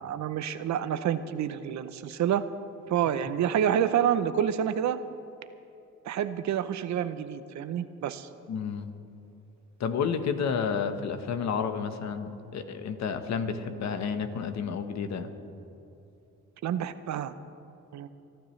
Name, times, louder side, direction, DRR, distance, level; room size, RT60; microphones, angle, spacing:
voice 1, 0.0-2.4 2.9-5.0 6.1-8.3 16.6-17.3 17.9-18.1, right 9 dB, 65° right, 12 dB, 0.8 m, -28 dB
voice 2, 8.5-8.9 9.8-15.3, left 6 dB, 65° left, 8 dB, 1.3 m, -31 dB
24.5 x 12.5 x 3.3 m, 2.9 s
cardioid pair, 90°, 30 cm